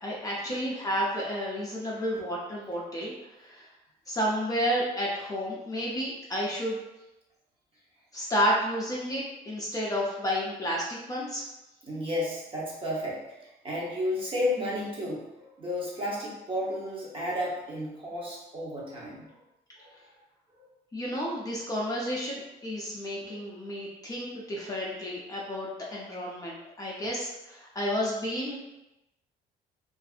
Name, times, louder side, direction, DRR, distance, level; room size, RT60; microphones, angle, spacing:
voice 1, 0.0-3.7 4.1-6.8 8.1-11.4 20.9-28.6, equal, 20° left, -4 dB, 0.5 m, -31 dB
voice 2, 11.9-15.2 15.6-19.3 19.8-19.9 20.6-20.7 23.2-23.3, left 1 dB, 30° right, -5 dB, 0.9 m, -32 dB
2.6 x 2.4 x 2.4 m, 0.93 s
cardioid pair, 110°, 17 cm